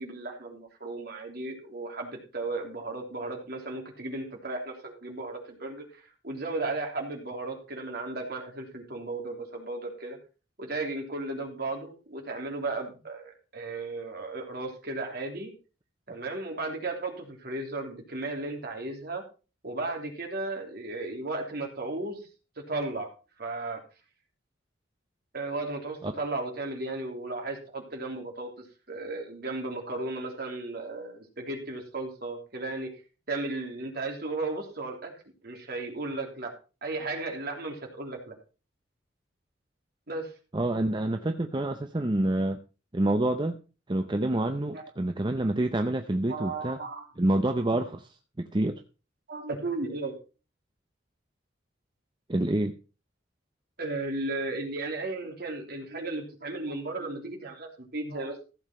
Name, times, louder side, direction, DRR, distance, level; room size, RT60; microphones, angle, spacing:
voice 1, 0.0-10.2 10.6-15.5 16.1-19.2 19.6-22.2 22.7-23.1 23.4-23.8 25.3-32.9 33.3-35.1 35.4-36.5 36.8-38.3 40.1-40.3 44.7-44.8 46.3-47.1 49.3-50.2 53.8-58.4, right 2 dB, 50° right, 1 dB, 3.1 m, -35 dB
voice 2, 40.5-42.6 42.9-43.6 43.9-46.8 47.2-48.1 48.4-48.8 52.3-52.8, right 1 dB, 25° right, 6 dB, 0.6 m, -27 dB
15.0 x 7.2 x 4.4 m, 0.34 s
head